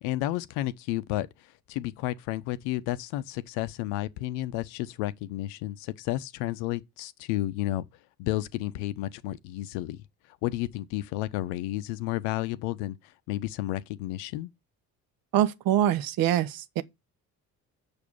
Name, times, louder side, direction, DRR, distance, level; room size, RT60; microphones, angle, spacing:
voice 1, 0.0-7.9 8.2-10.0 10.4-13.0 13.3-14.5, left 16 dB, 60° left, 0.7 m, -32 dB
voice 2, 15.3-16.8, right 11 dB, 50° right, 0.9 m, -24 dB
7.0 x 6.6 x 5.4 m
figure-of-eight pair, 45°, 47 cm